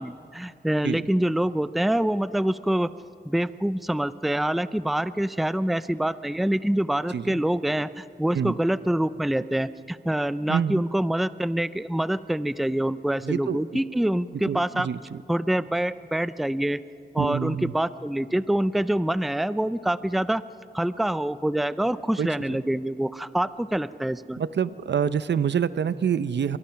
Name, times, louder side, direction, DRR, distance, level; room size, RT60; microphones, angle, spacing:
voice 1, 0.0-2.9 3.2-14.9 15.3-16.8 17.1-20.4 20.7-24.4, right 1 dB, ahead, 15 dB, 0.5 m, -26 dB
voice 2, 10.5-10.8 13.2-13.8 14.5-15.2 17.2-17.7 22.2-22.3 24.4-26.6, right 7 dB, 80° right, 15 dB, 0.7 m, -26 dB
29.5 x 24.5 x 5.8 m, 2.6 s
wide cardioid pair, 100°, 18 cm